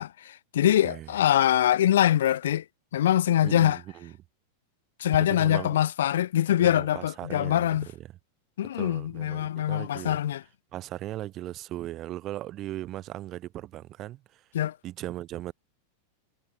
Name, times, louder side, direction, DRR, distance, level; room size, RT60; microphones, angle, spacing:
voice 1, 0.0-2.6 2.9-3.8 5.0-7.9 8.6-10.4 14.5-14.8, left 11 dB, 60° left, 0.3 m, -24 dB
voice 2, 3.4-4.1 5.3-5.7 6.6-7.7 8.8-10.2 10.7-14.4 14.8-15.5, right 14 dB, 35° right, 3.8 m, -38 dB
figure-of-eight pair, 90°, 0 cm